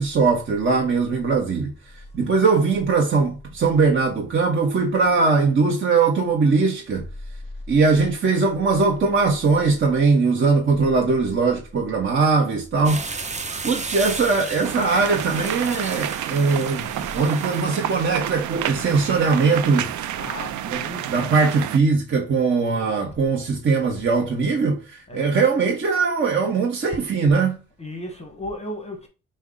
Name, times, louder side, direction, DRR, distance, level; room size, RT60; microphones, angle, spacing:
voice 1, 0.0-7.1 7.7-13.0 13.6-19.9 20.7-20.8 21.1-27.6, right 4 dB, 40° right, 0.9 m, -20 dB
sound 1, 12.8-17.9, right 4 dB, 25° right, 0.6 m, -34 dB
sound 2, 14.6-21.8, right 11 dB, 75° right, 0.4 m, -30 dB
voice 2, 20.1-21.1 22.6-23.1 25.1-25.3 27.0-27.1 27.8-29.1, left 1 dB, 20° left, 1.0 m, -35 dB
5.3 x 2.2 x 3.6 m
cardioid pair, 90°, 30 cm